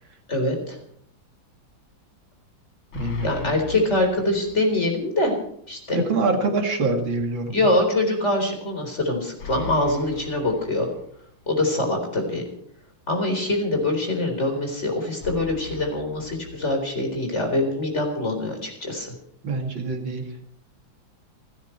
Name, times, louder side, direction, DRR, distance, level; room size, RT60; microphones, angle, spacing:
voice 1, 0.3-0.8 3.2-5.3 5.7-6.0 7.5-10.9 11.5-12.4 13.1-19.1, left 1 dB, 35° left, 2 dB, 4.4 m, -24 dB
sound 1, 2.9-4.9 5.3-5.4 9.4-11.4 15.2-17.2, left 4 dB, 75° left, 2.6 m, -38 dB
voice 2, 2.9-3.5 5.9-7.7 19.4-20.3, right 3 dB, 70° right, 3 dB, 3.2 m, -25 dB
29.5 x 10.0 x 4.6 m, 0.67 s
omnidirectional pair, 2.2 m